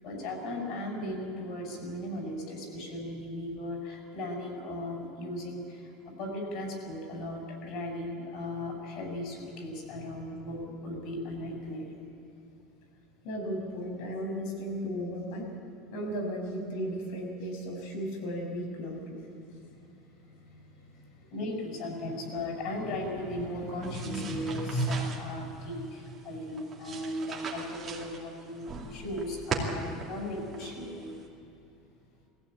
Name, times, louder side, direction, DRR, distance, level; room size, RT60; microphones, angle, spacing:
voice 1, 0.0-11.9 21.3-28.6 28.9-31.1, left 1 dB, 55° left, 1 dB, 6.4 m, -36 dB
voice 2, 13.2-15.4 15.9-19.2, equal, 70° left, 1 dB, 5.7 m, -35 dB
sound 1, 23.8-31.3, right 4 dB, 25° right, 2.6 m, -40 dB
20.5 x 15.5 x 8.8 m, 2.7 s
supercardioid pair, 150°, 0 cm